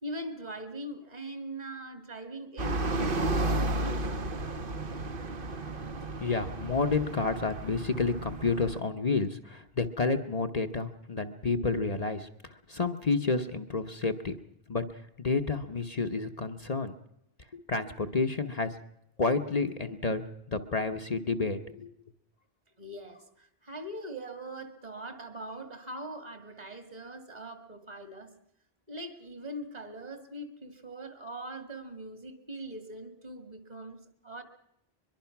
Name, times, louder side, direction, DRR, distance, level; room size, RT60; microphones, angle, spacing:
voice 1, 0.0-4.3 22.8-28.3 28.9-34.0 34.2-34.4, right 1 dB, 40° right, 8 dB, 2.3 m, -41 dB
sound 1, 2.6-8.8, right 2 dB, 60° right, 1.4 m, -33 dB
voice 2, 6.2-12.3 12.7-14.3 14.7-14.8 15.2-17.0 17.5-18.7 19.2-20.2 20.5-21.9, left 4 dB, 40° left, 6 dB, 1.0 m, -30 dB
22.5 x 22.5 x 5.9 m, 0.79 s
omnidirectional pair, 1.0 m